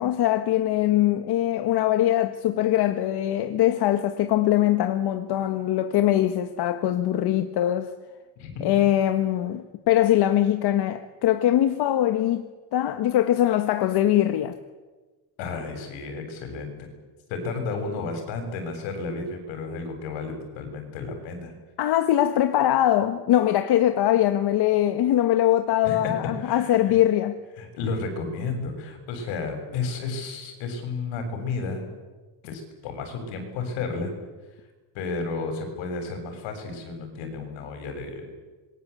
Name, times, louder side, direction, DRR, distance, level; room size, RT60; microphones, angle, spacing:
voice 1, 0.0-7.9 8.6-12.5 12.7-14.5 21.8-27.4, left 12 dB, 60° left, 1.6 m, -22 dB
voice 2, 8.4-8.7 15.4-16.9 17.3-21.5 25.8-26.0 26.4-26.9 27.6-31.8 32.4-34.1 34.9-38.3, left 4 dB, 85° left, 7.5 m, -32 dB
26.5 x 22.5 x 8.4 m
cardioid pair, 135°, 44 cm